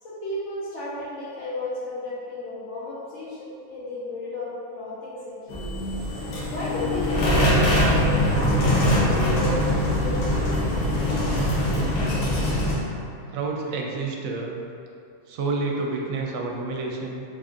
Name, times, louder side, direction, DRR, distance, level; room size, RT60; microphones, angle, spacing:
voice 1, 0.0-5.6 6.5-10.2 13.0-13.1, left 1 dB, 60° left, -8 dB, 1.0 m, -34 dB
sound 1, 5.5-12.8, left 1 dB, 90° left, 1.3 m, -22 dB
sound 2, 7.2-14.7, right 6 dB, 35° right, 0.9 m, -44 dB
voice 2, 13.3-14.6 15.3-17.2, right 3 dB, 75° right, 0 dB, 0.9 m, -29 dB
3.7 x 2.5 x 3.4 m, 2.5 s
omnidirectional pair, 1.5 m